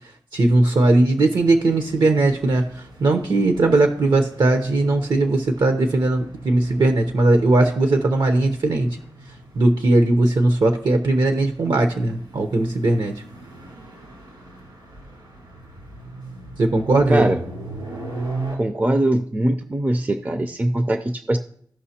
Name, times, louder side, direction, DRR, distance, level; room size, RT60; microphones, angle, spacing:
voice 1, 0.3-9.0 9.5-13.1 16.6-17.3, right 2 dB, 70° right, 6 dB, 0.8 m, -19 dB
sound 1, 1.3-18.5, right 2 dB, 85° right, 3.9 m, -39 dB
voice 2, 17.1-17.4 18.5-21.4, right 1 dB, 20° right, 7 dB, 0.5 m, -21 dB
15.5 x 5.7 x 2.8 m, 0.63 s
wide cardioid pair, 120°, 8 cm